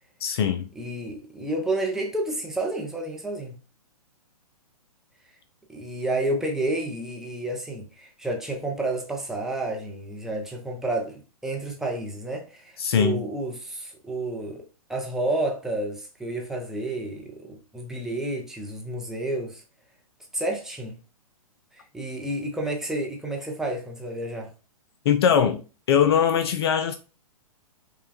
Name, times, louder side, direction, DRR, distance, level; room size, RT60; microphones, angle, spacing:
voice 1, 0.2-0.7 12.8-13.3 25.1-25.6 25.9-27.0, left 8 dB, 40° left, 0.4 m, -21 dB
voice 2, 0.8-3.6 5.7-14.6 14.9-19.6 20.3-21.0 21.9-24.5, right 2 dB, ahead, 0.6 m, -30 dB
5.4 x 2.2 x 2.6 m
figure-of-eight pair, 120°, 19 cm